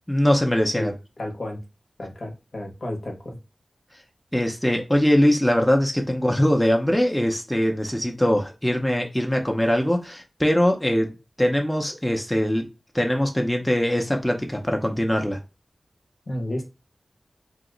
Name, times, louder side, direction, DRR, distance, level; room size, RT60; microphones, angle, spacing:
voice 1, 0.1-0.9 4.3-11.1 11.4-12.6 12.9-15.4, equal, 5° left, 0.5 m, -22 dB
voice 2, 1.2-1.6 2.0-3.4 16.3-16.6, left 1 dB, 55° left, 0.8 m, -31 dB
2.8 x 2.1 x 3.7 m
wide cardioid pair, 80°, 0 cm